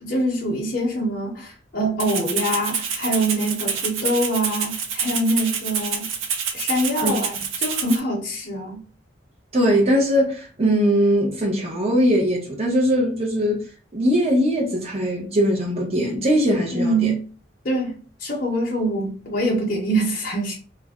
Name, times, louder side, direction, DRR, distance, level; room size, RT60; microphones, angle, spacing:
voice 1, 0.0-6.1 6.5-8.8 16.7-17.2 17.6-17.9 18.2-20.5, right 1 dB, 45° left, 0.7 m, -24 dB
Rattle (instrument), 2.0-8.0, right 6 dB, 85° right, 0.5 m, -27 dB
voice 2, 9.5-13.6 13.9-17.1, equal, 30° right, 0.8 m, -20 dB
2.4 x 2.1 x 3.5 m
head